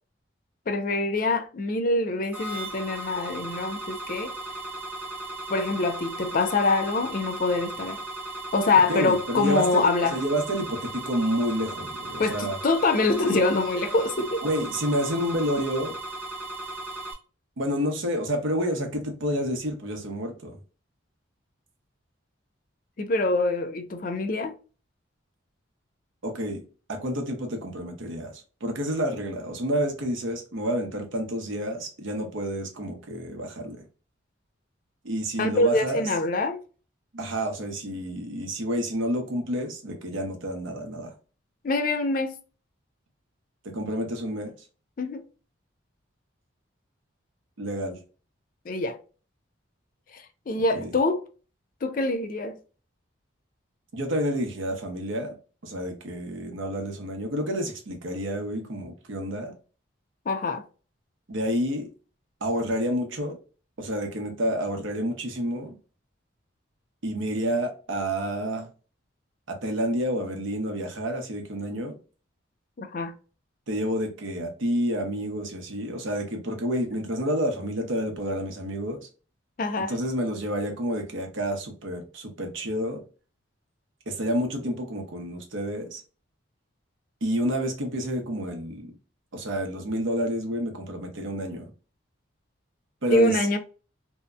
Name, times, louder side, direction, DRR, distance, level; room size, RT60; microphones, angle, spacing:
voice 1, 0.7-4.3 5.5-8.0 8.5-10.2 12.2-14.4 23.0-24.5 35.4-36.6 41.6-42.4 45.0-45.2 48.7-49.0 50.1-51.2 51.8-52.6 60.3-60.6 72.8-73.1 79.6-79.9 93.1-93.6, left 2 dB, 45° left, 0.4 m, -25 dB
sound 1, 2.3-17.1, right 2 dB, 10° right, 0.6 m, -36 dB
voice 2, 8.9-9.8 10.1-12.6 14.4-16.0 17.6-20.6 26.2-26.6 26.9-33.8 35.0-36.1 37.1-41.1 43.6-44.5 47.6-48.0 50.7-50.9 53.9-55.3 55.6-59.5 61.3-61.9 62.4-63.4 63.8-65.7 67.0-68.7 69.5-71.9 73.7-79.1 79.9-83.0 84.1-86.0 87.2-88.9 89.3-91.7 93.0-93.4, equal, 75° right, 0.8 m, -29 dB
2.7 x 2.1 x 2.3 m
head